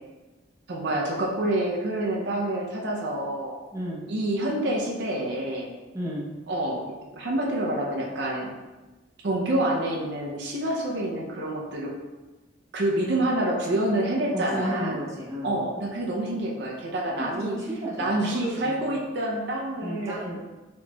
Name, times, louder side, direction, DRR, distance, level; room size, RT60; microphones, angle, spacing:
voice 1, 0.7-3.6 4.1-5.7 6.5-8.5 9.2-11.9 12.7-15.0 15.4-17.6 18.0-20.1, right 1 dB, 65° right, -2 dB, 0.5 m, -27 dB
voice 2, 3.7-4.0 5.9-6.2 14.3-15.5 17.2-18.9 19.8-20.4, equal, 15° right, -6 dB, 0.7 m, -33 dB
4.1 x 3.0 x 2.2 m, 1.2 s
head